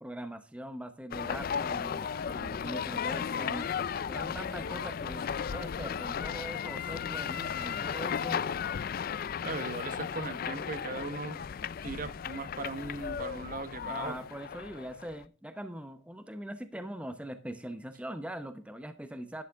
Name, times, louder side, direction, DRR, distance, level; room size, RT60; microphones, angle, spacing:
voice 1, 0.0-3.7 4.1-8.4 13.8-19.4, right 1 dB, 5° right, 9 dB, 0.8 m, -42 dB
sound 1, 1.1-15.3, left 7 dB, 50° left, 0.3 m, -35 dB
voice 2, 9.4-11.4 11.8-14.2, right 3 dB, 45° right, 11 dB, 1.0 m, -38 dB
11.5 x 8.3 x 3.5 m, 0.35 s
head